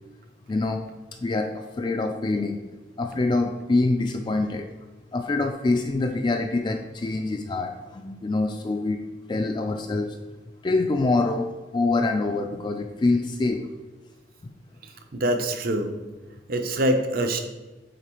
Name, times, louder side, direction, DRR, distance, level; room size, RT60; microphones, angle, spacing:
voice 1, 0.5-0.8 1.2-2.6 3.0-4.7 5.1-9.0 9.3-10.2 10.6-11.5 11.7-13.7, left 3 dB, 25° left, 5 dB, 0.3 m, -25 dB
voice 2, 14.8-15.9 16.5-17.4, right 1 dB, 50° right, 6 dB, 0.6 m, -25 dB
7.9 x 4.1 x 3.0 m, 1.2 s
head